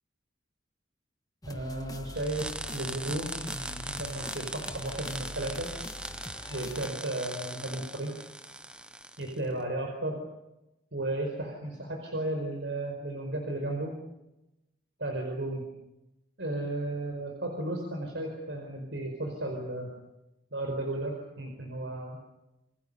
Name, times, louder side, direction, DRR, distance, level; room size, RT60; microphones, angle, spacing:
sound 1, 1.4-6.9, left 1 dB, 20° left, 1.3 m, -44 dB
voice 1, 1.4-5.7 6.5-8.2 9.2-10.2 10.9-13.9 15.0-15.7 16.4-19.9 20.5-22.2, right 1 dB, 85° right, 2 dB, 4.9 m, -34 dB
sound 2, 2.2-9.4, right 1 dB, 5° right, 0.9 m, -40 dB
28.5 x 24.0 x 7.0 m, 0.93 s
head